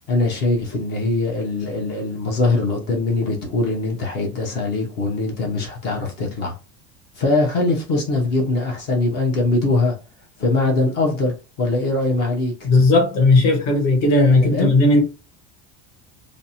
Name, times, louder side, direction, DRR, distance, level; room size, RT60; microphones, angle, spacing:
voice 1, 0.1-6.5 7.2-10.0 10.4-12.7 14.4-15.0, left 2 dB, 30° left, 0.5 m, -22 dB
voice 2, 12.6-15.0, left 2 dB, 50° left, 1.0 m, -15 dB
2.5 x 2.0 x 2.7 m
cardioid pair, 175°, 34 cm